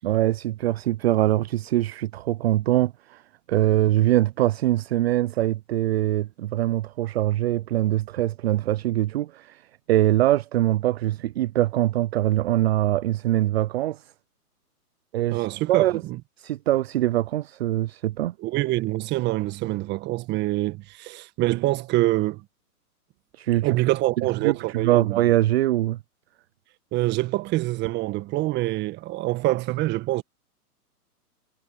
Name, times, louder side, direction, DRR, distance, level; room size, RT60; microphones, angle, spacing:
voice 1, 0.0-3.2 3.5-9.6 9.9-14.1 15.1-16.0 16.4-18.3 23.3-23.7 24.4-26.0, right 14 dB, 40° right, 0.7 m, -23 dB
voice 2, 15.3-16.2 18.4-22.4 23.6-25.2 26.9-30.2, right 18 dB, 20° right, 1.6 m, -25 dB
hypercardioid pair, 135°, 47 cm